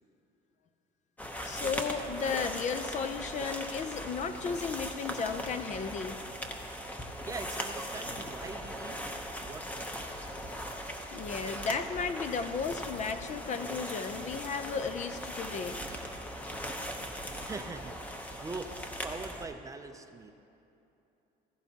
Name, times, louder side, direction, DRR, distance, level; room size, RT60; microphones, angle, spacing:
sound 1, 1.2-19.5, equal, 10° left, 0.8 m, -39 dB
voice 1, 1.4-6.2 11.1-15.8, left 5 dB, 45° left, 9 dB, 0.6 m, -34 dB
voice 2, 7.2-9.0 9.4-10.0 17.2-20.3, right 3 dB, 20° right, 6 dB, 0.5 m, -42 dB
16.5 x 15.5 x 2.9 m, 2.8 s
cardioid pair, 150°, 18 cm